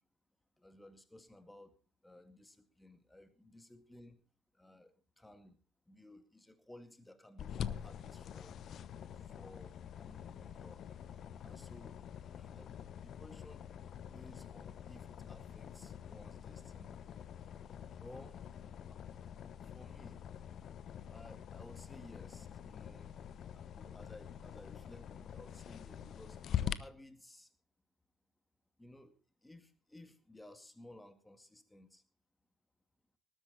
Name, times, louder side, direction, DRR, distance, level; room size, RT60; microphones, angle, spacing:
voice 1, 0.6-1.8 2.0-4.2 4.6-5.6 5.9-8.6 9.3-10.8 11.4-12.0 12.3-13.6 14.0-17.0 17.9-18.4 19.6-20.2 21.1-23.3 23.5-26.4 26.8-27.5 28.8-32.0, left 1 dB, 5° left, 10 dB, 2.2 m, -57 dB
sound 1, 7.4-26.7, left 9 dB, 40° left, 0.9 m, -45 dB
19.5 x 12.5 x 4.1 m, 0.34 s
figure-of-eight pair, 65°, 0 cm